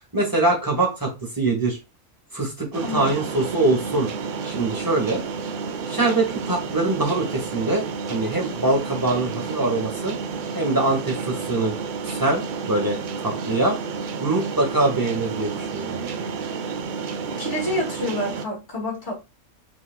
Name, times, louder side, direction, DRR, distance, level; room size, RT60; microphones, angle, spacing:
voice 1, 0.1-1.8 2.3-4.1 4.4-5.2 5.9-10.1 10.5-11.8 12.0-13.8 14.2-16.0, right 2 dB, 15° right, 1.8 m, -23 dB
sound 1, 2.7-18.5, right 5 dB, 60° right, 0.5 m, -31 dB
voice 2, 2.8-3.1 17.4-19.1, left 1 dB, 55° left, 2.8 m, -28 dB
6.2 x 3.7 x 2.3 m
omnidirectional pair, 1.4 m